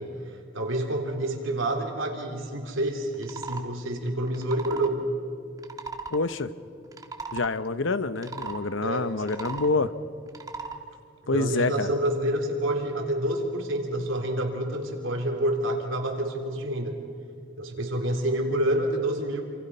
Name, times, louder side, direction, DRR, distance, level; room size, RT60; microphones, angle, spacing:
voice 1, 0.0-5.1 8.8-9.3 11.3-17.0 17.6-19.4, right 1 dB, 75° right, 2 dB, 3.6 m, -28 dB
sound 1, 3.1-3.7 4.3-4.9 5.6-6.2 6.8-7.5 8.2-8.6 9.2-9.7 10.3-10.8, right 4 dB, 20° right, 1.3 m, -37 dB
voice 2, 6.1-6.5 7.3-9.9 11.3-11.9, left 3 dB, 70° left, 13 dB, 0.9 m, -27 dB
28.0 x 28.0 x 5.6 m, 2.5 s
head